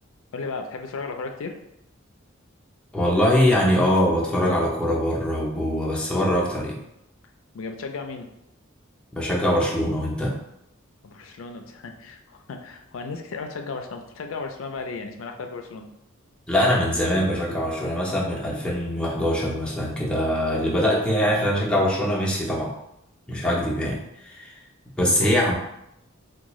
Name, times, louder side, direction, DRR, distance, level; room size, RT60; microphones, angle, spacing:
voice 1, 0.3-1.6 7.5-8.3 11.0-15.9 25.0-25.4, left 4 dB, 65° left, 5 dB, 0.4 m, -35 dB
voice 2, 2.9-6.8 9.1-10.3 16.5-22.7 23.3-24.5 25.0-25.5, equal, 5° left, -4 dB, 0.6 m, -23 dB
3.6 x 2.3 x 3.0 m, 0.82 s
head